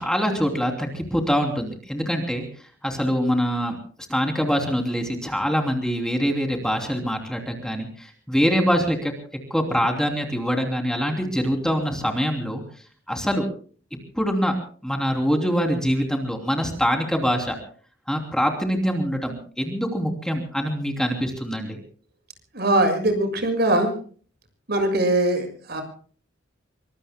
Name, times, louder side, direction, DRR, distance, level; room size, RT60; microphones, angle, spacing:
voice 1, 0.0-2.4 2.8-3.8 4.1-9.1 9.5-12.6 13.1-13.4 14.1-14.5 14.8-17.6 18.1-21.8, equal, 5° left, 2 dB, 3.1 m, -24 dB
voice 2, 22.5-23.9 24.7-25.8, right 1 dB, 55° right, 6 dB, 6.8 m, -21 dB
26.0 x 24.5 x 2.2 m, 0.43 s
head